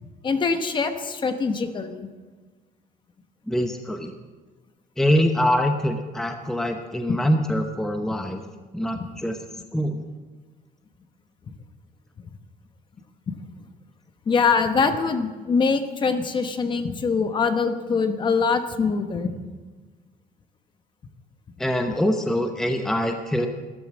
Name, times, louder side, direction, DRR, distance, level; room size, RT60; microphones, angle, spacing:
voice 1, 0.2-2.0 8.9-9.0 14.3-19.3, left 5 dB, 30° left, 8 dB, 1.1 m, -23 dB
voice 2, 3.5-4.1 5.0-8.4 8.7-9.4 9.7-10.0 21.6-23.5, equal, 5° left, 5 dB, 0.8 m, -24 dB
13.5 x 12.5 x 7.6 m, 1.4 s
cardioid pair, 170°, 16 cm